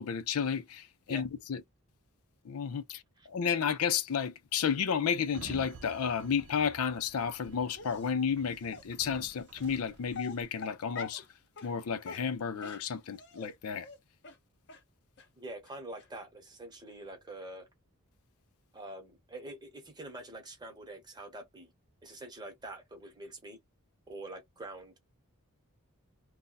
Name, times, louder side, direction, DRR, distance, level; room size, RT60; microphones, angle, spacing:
voice 1, 0.0-1.6 2.4-11.2 11.6-13.9, left 7 dB, 75° left, 0.5 m, -32 dB
Sliding door, 5.2-10.4, right 4 dB, 60° right, 0.6 m, -52 dB
Dog, 7.7-8.1 8.7-8.8 9.6-9.8 10.1-11.3 11.6-11.7 12.0-13.5 13.8-14.0 14.2-14.4 14.7-14.8 15.2-15.3 15.6-15.7 16.0-16.1, left 5 dB, 55° left, 0.9 m, -44 dB
voice 2, 15.4-17.7 18.7-21.7 22.0-23.6 24.1-25.0, right 1 dB, 20° right, 1.0 m, -45 dB
2.6 x 2.2 x 3.9 m
head